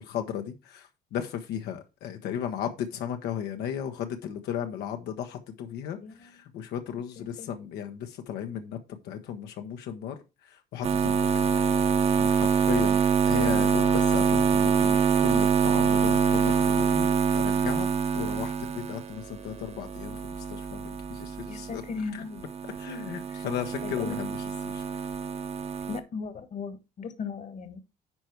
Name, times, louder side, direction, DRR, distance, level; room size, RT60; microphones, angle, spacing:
voice 1, 0.0-8.8 9.0-10.2 10.5-11.3 12.2-17.9 18.1-21.8 22.1-22.2 22.8-24.4 24.6-24.8, left 9 dB, 80° left, 1.1 m, -35 dB
voice 2, 7.2-7.5 21.5-22.4 23.3-23.4 23.8-24.2 25.9-27.8, left 5 dB, 45° left, 1.6 m, -38 dB
sound 1, 10.8-22.1 22.4-26.0, right 6 dB, 35° right, 1.0 m, -25 dB
10.5 x 4.5 x 4.6 m
cardioid pair, 110°, 17 cm